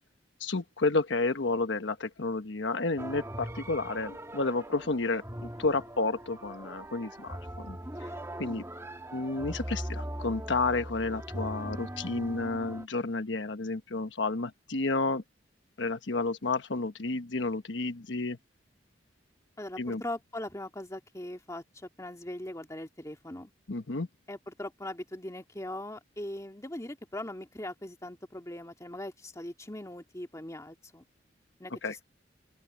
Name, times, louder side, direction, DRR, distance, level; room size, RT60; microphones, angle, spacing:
voice 1, 0.4-8.1 8.4-8.6 9.1-15.2 15.8-18.4 19.8-20.0 23.7-24.1 31.8-32.0, left 3 dB, 80° left, 1.2 m, -31 dB
sound 1, 3.0-12.9, right 1 dB, 15° right, 1.7 m, -40 dB
voice 2, 19.6-23.5 24.3-31.0 31.6-31.7, left 1 dB, 15° left, 2.4 m, -40 dB
open air
head